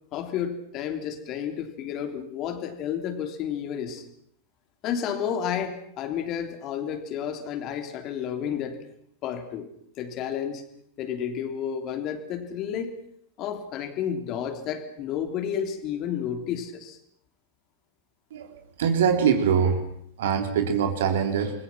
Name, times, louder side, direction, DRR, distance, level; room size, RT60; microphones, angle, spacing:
voice 1, 0.1-4.0 4.8-8.8 9.2-9.7 10.0-10.6 11.0-12.9 13.4-17.0, left 8 dB, 35° left, 7 dB, 3.4 m, -31 dB
voice 2, 18.3-19.8 20.2-21.6, right 7 dB, 60° right, 7 dB, 3.3 m, -23 dB
29.5 x 22.0 x 6.0 m, 0.65 s
figure-of-eight pair, 90°, 0 cm